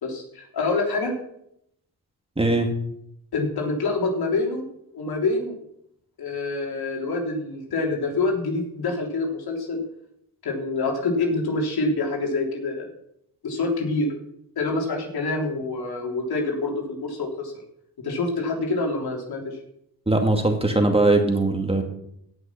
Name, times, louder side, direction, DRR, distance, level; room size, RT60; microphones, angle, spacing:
voice 1, 0.0-1.1 3.3-4.6 4.9-5.6 6.2-9.8 10.4-12.9 13.4-14.1 14.6-17.5 18.0-19.6, left 3 dB, 70° left, 0 dB, 3.5 m, -26 dB
voice 2, 2.4-2.7 20.1-21.8, right 2 dB, 15° right, 4 dB, 2.2 m, -20 dB
17.0 x 6.2 x 6.0 m, 0.74 s
cardioid pair, 80°, 38 cm